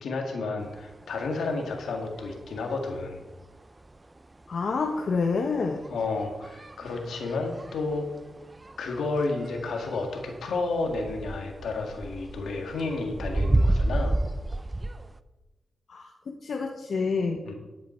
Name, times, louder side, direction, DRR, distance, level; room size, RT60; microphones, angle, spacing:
voice 1, 0.0-3.2 5.9-8.1 8.8-14.2 17.4-17.5, left 3 dB, 85° left, 3 dB, 1.9 m, -31 dB
sound 1, 0.6-15.2, right 2 dB, 25° right, 0.6 m, -33 dB
voice 2, 4.5-5.8 15.9-17.4, left 4 dB, 65° left, 2 dB, 1.1 m, -28 dB
11.0 x 8.7 x 4.5 m, 1.1 s
cardioid pair, 55°, 0 cm